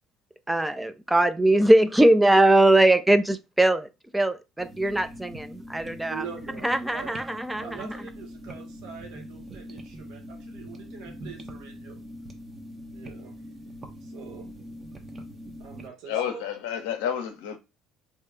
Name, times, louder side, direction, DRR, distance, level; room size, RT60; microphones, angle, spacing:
voice 1, 0.5-6.2 6.6-7.9, right 1 dB, 10° right, 0.3 m, -21 dB
sound 1, 4.6-15.9, equal, 30° right, 0.7 m, -42 dB
voice 2, 6.1-7.2 7.6-12.0 12.9-13.4 14.0-14.5 15.6-16.4, right 7 dB, 70° right, 0.7 m, -43 dB
voice 3, 16.1-17.6, left 9 dB, 75° left, 0.6 m, -30 dB
2.6 x 2.3 x 3.7 m
hypercardioid pair, 65°, 0 cm